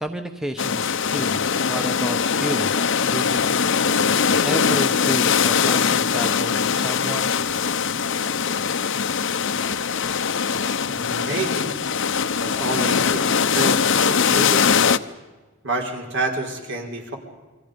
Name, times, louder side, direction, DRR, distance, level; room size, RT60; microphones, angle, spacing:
voice 1, 0.0-1.4 1.7-2.7 3.1-3.4 4.4-7.3, equal, ahead, 6 dB, 1.0 m, -31 dB
sound 1, 0.6-15.0, left 6 dB, 60° left, 0.8 m, -21 dB
voice 2, 10.9-11.8 12.4-14.9 15.6-17.2, right 2 dB, 60° right, 2 dB, 4.9 m, -29 dB
28.5 x 23.5 x 5.3 m, 1.2 s
head